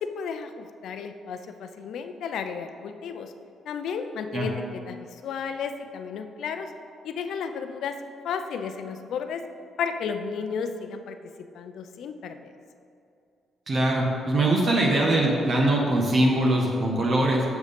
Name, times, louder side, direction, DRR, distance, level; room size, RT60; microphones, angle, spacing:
voice 1, 0.0-3.3 3.7-5.0 5.2-6.7 7.0-8.0 8.2-9.4 9.8-11.2 11.5-12.5, left 6 dB, 75° left, 8 dB, 0.6 m, -33 dB
voice 2, 13.7-17.4, right 1 dB, 50° right, -2 dB, 1.2 m, -22 dB
7.1 x 6.4 x 5.2 m, 2.5 s
cardioid pair, 90°, 0 cm